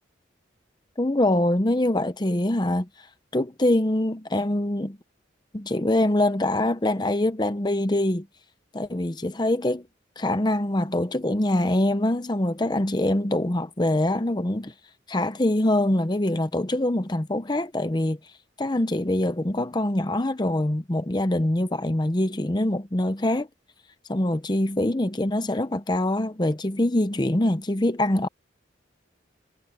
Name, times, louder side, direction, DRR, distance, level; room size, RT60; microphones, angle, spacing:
voice 1, 1.0-3.1 3.3-5.0 5.5-8.3 8.7-9.9 10.2-14.7 15.1-18.2 18.6-23.5 24.1-28.3, left 1 dB, 20° left, 0.8 m, -24 dB
head